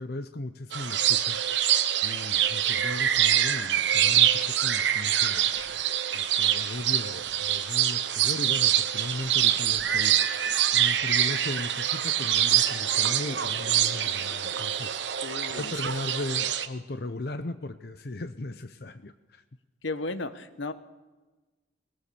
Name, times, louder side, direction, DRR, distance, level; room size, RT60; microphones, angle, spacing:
voice 1, 0.0-1.4 2.0-5.5 6.1-10.2 10.7-15.0 15.5-19.4, left 2 dB, 55° left, 10 dB, 0.8 m, -37 dB
sound 1, 0.7-16.7, right 10 dB, 75° right, 1.0 m, -25 dB
sound 2, 3.2-15.6, right 2 dB, 55° right, 2.5 m, -47 dB
voice 2, 15.2-15.9 19.8-20.7, left 3 dB, 85° left, 11 dB, 1.3 m, -34 dB
21.0 x 19.0 x 7.0 m, 1.2 s
head